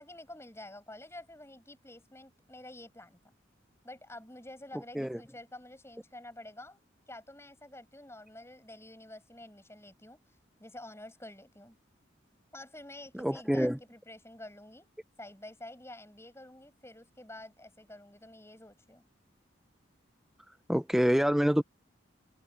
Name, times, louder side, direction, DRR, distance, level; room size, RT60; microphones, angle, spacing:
voice 1, 0.0-3.3 3.8-10.2 10.6-11.8 12.5-14.9 15.2-19.0, left 1 dB, 15° left, 7.8 m, -49 dB
voice 2, 13.1-13.8 20.7-21.6, equal, ahead, 0.4 m, -26 dB
open air
head